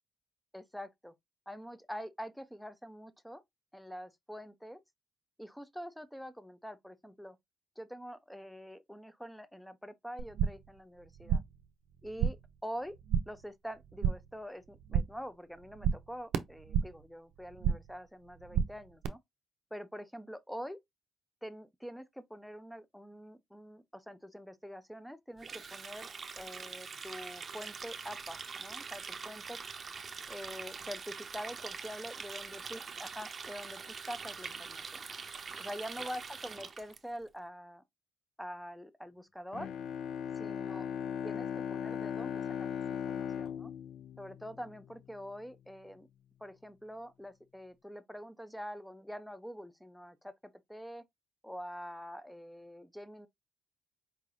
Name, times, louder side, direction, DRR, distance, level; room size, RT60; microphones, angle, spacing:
voice 1, 0.5-1.1 1.5-3.4 3.7-4.8 5.4-7.4 7.8-11.4 12.0-12.9 13.3-19.2 19.7-20.8 21.4-26.1 26.4-29.6 30.3-35.0 35.6-37.8 38.4-39.7 40.4-40.9 41.2-43.7 44.2-46.1 46.4-50.3 50.7-51.0 51.4-53.3, equal, ahead, 0.6 m, -45 dB
sound 1, 10.2-10.7 11.0-11.6 11.9-12.6 12.8-13.4 13.7-14.4 14.7-15.3 15.5-17.1 17.4-18.0 18.3-19.1, right 8 dB, 85° right, 0.5 m, -33 dB
Water tap faucet, 25.4-37.0, right 5 dB, 40° right, 0.6 m, -44 dB
Bowed string instrument, 39.5-45.1, left 8 dB, 70° left, 0.4 m, -38 dB
4.7 x 3.2 x 2.6 m
cardioid pair, 90°, 0 cm